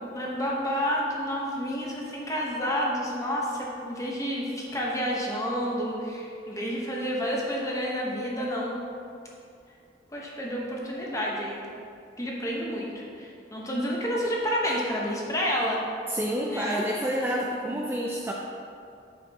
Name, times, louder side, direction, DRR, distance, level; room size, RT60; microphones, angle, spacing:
voice 1, 0.0-8.8 10.1-11.7 12.2-15.8 16.5-16.8 17.7-17.9, equal, 15° left, -3 dB, 1.0 m, -30 dB
voice 2, 16.1-18.3, equal, 10° right, -3 dB, 0.4 m, -28 dB
7.6 x 6.6 x 2.9 m, 2.4 s
head